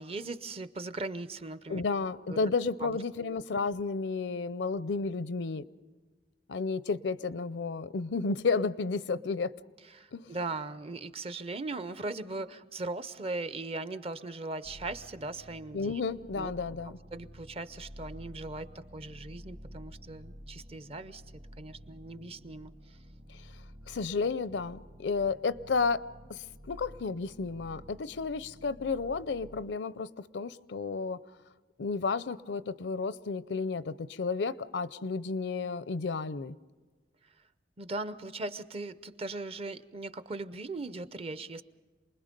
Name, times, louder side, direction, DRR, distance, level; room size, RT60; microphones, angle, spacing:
voice 1, 0.0-1.8 2.3-2.5 2.8-3.3 9.9-16.0 16.4-16.5 17.1-21.2 21.6-22.7 37.8-41.6, right 2 dB, 35° right, 0.6 m, -39 dB
voice 2, 1.7-5.7 6.5-9.5 10.1-10.4 15.7-16.9 23.9-26.0 26.3-30.1 30.3-31.2 31.8-36.5, left 4 dB, 75° left, 0.6 m, -32 dB
sound 1, 14.6-29.6, equal, 55° right, 2.4 m, -51 dB
28.0 x 21.0 x 5.2 m
head